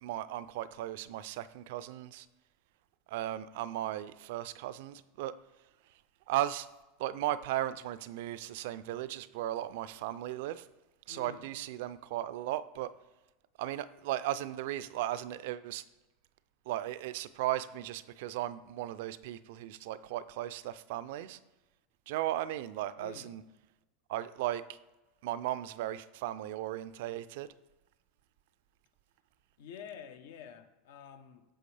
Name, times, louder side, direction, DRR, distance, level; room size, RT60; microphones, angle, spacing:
voice 1, 0.0-2.3 3.1-5.3 6.3-6.7 7.0-10.7 11.1-12.9 13.6-15.8 16.7-21.4 22.1-23.4 24.1-24.8 25.2-27.5, right 13 dB, 70° right, 0.4 m, -36 dB
voice 2, 11.1-11.4 23.0-23.3 29.6-31.4, left 7 dB, 75° left, 0.7 m, -48 dB
7.7 x 6.3 x 3.3 m
hypercardioid pair, 110°, 0 cm